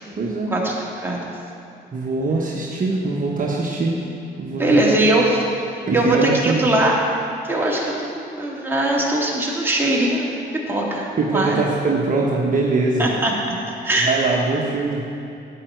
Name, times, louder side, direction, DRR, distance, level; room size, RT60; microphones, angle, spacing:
voice 1, 0.1-0.6 1.9-4.0 4.4-5.0 5.9-6.7 11.2-13.1 13.9-15.1, right 3 dB, 45° right, -3 dB, 1.2 m, -22 dB
voice 2, 1.0-1.3 4.6-5.4 5.9-7.0 7.5-11.6 13.0-13.3 13.7-14.1, right 1 dB, 10° right, -4 dB, 2.3 m, -20 dB
11.0 x 9.0 x 4.6 m, 2.6 s
cardioid pair, 90°, 20 cm